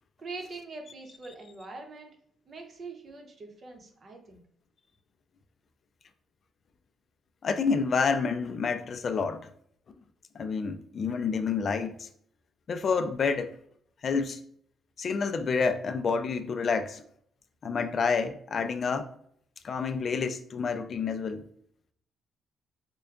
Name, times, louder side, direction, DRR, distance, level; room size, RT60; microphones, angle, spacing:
voice 1, 0.2-2.2 2.5-4.4, right 3 dB, 45° right, 0.8 m, -43 dB
voice 2, 7.4-9.5 10.4-12.1 12.7-13.6 14.0-14.4 15.0-17.0 17.6-19.1 19.6-21.4, left 5 dB, 50° left, 0.3 m, -28 dB
4.5 x 2.1 x 2.4 m
cardioid pair, 90°, 0 cm